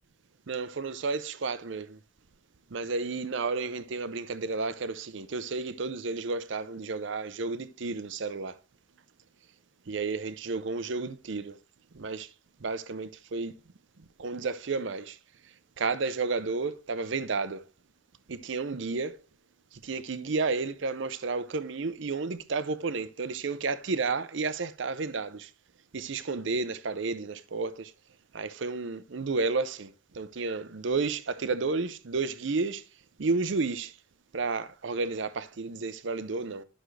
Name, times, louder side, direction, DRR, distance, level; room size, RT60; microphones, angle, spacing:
voice 1, 0.5-2.0 2.7-8.6 9.9-11.6 11.9-12.3 12.6-13.6 14.0-15.2 15.4-17.6 18.3-19.2 19.7-25.5 25.9-27.9 28.3-32.8 33.2-34.0 34.3-36.6, right 4 dB, 65° right, 0.6 m, -32 dB
11.5 x 6.2 x 3.2 m
head